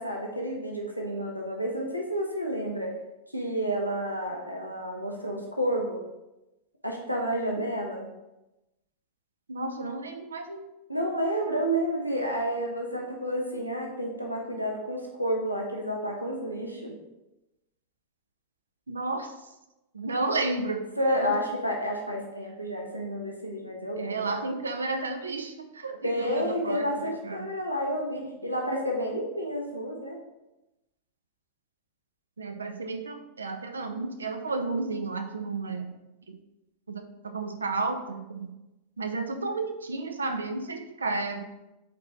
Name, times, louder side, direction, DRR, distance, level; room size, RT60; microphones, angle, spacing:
voice 1, 0.0-2.9 3.3-6.0 6.8-8.1 10.9-16.9 21.0-24.3 26.0-30.2, equal, 90° left, 0 dB, 1.0 m, -30 dB
voice 2, 9.5-10.6 18.9-19.3 19.9-20.9 21.2-21.4 24.0-27.5 32.4-35.9 36.3-36.4 36.9-38.5 39.0-41.5, right 3 dB, 75° right, 6 dB, 0.7 m, -32 dB
7.6 x 4.4 x 3.6 m, 0.98 s
figure-of-eight pair, 90°, 0 cm